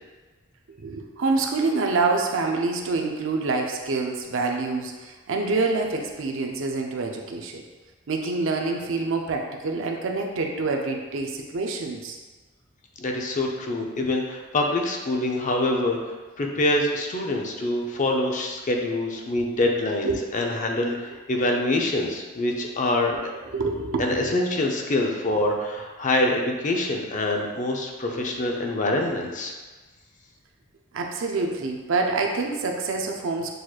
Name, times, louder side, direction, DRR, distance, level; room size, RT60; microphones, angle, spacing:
voice 1, 0.8-7.6 8.1-12.2 14.0-14.1 20.0-20.1 23.5-24.3 28.1-28.2 30.9-33.5, right 3 dB, 65° right, 2 dB, 0.5 m, -26 dB
voice 2, 13.0-16.0 16.4-23.1 24.0-29.5, left 1 dB, 40° left, 1 dB, 0.5 m, -25 dB
6.3 x 3.0 x 2.3 m, 1.3 s
head